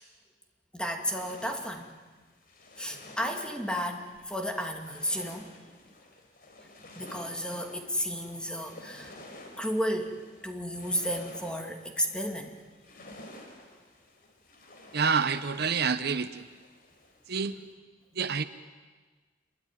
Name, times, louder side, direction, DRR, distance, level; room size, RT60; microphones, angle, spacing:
voice 1, 0.7-1.9 2.8-5.5 7.0-9.1 9.6-10.2 10.4-12.6, equal, 5° left, 3 dB, 2.5 m, -33 dB
sound 1, 1.0-17.5, left 1 dB, 55° left, 4.5 m, -51 dB
voice 2, 14.9-16.5 17.3-17.6 18.1-18.4, right 5 dB, 60° right, 11 dB, 0.9 m, -27 dB
27.0 x 23.0 x 9.3 m, 1.4 s
head